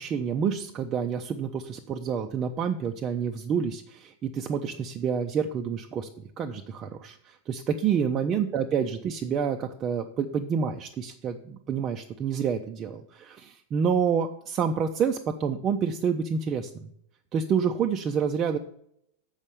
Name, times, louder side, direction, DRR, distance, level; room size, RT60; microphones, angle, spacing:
voice 1, 0.0-6.1 6.4-16.9 17.3-18.6, right 7 dB, 30° right, 4 dB, 0.6 m, -28 dB
7.1 x 5.4 x 7.0 m, 0.71 s
figure-of-eight pair, 90°, 0 cm